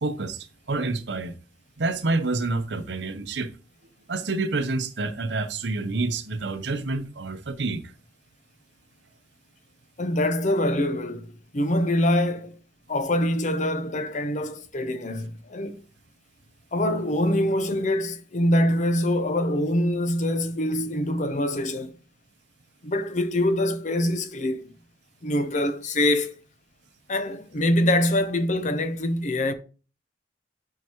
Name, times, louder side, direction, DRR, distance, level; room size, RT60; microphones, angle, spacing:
voice 1, 0.0-1.3 1.8-3.5 4.1-7.8, right 3 dB, 75° right, 0.8 m, -28 dB
voice 2, 10.0-12.6 12.9-15.8 16.7-21.9 22.8-24.7 25.2-26.3 27.1-29.5, left 1 dB, 45° left, 0.7 m, -24 dB
9.5 x 4.6 x 2.9 m
head